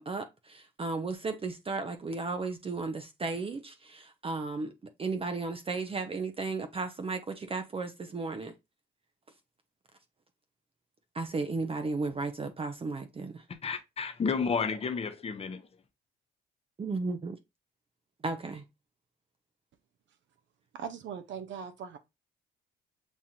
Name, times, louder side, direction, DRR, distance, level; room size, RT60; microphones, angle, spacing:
voice 1, 0.0-4.7 5.0-8.5 11.1-13.4 16.8-17.4 18.2-18.6, right 3 dB, 30° right, 0.6 m, -34 dB
voice 2, 13.6-15.6, left 5 dB, 30° left, 0.7 m, -31 dB
voice 3, 20.7-22.0, right 7 dB, 70° right, 0.6 m, -40 dB
7.1 x 2.4 x 2.7 m
cardioid pair, 90°, 20 cm